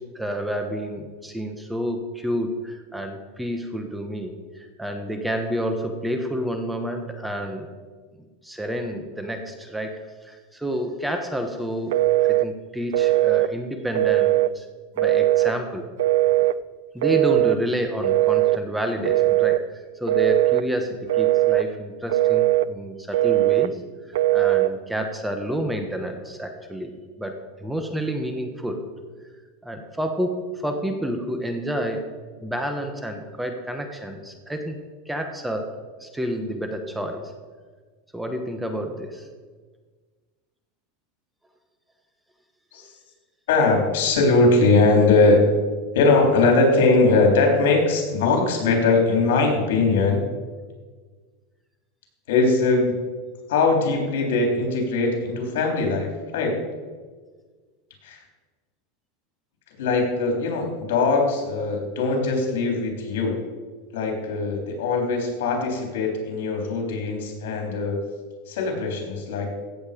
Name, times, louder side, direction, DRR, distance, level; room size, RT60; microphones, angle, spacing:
voice 1, 0.0-7.7 8.4-14.7 14.9-15.9 16.9-23.8 24.1-26.9 27.2-28.8 29.6-32.1 32.4-34.8 35.0-35.7 36.0-37.3 38.1-39.3, equal, 5° right, 5 dB, 1.2 m, -29 dB
Telephone, 11.9-12.5 12.9-13.5 14.0-14.5 15.0-15.5 16.0-16.6 17.0-17.6 18.0-18.6 19.0-19.6 20.1-20.6 21.1-21.7 22.1-22.7 23.1-23.7 24.1-24.7, right 16 dB, 80° right, 0.4 m, -19 dB
voice 2, 43.5-45.4 45.9-50.3 52.3-52.9 53.5-56.6 58.0-58.2 59.8-63.4 63.9-68.0 68.5-69.5, left 3 dB, 80° left, 2 dB, 3.6 m, -21 dB
16.0 x 8.0 x 5.2 m, 1.5 s
supercardioid pair, 135°, 0 cm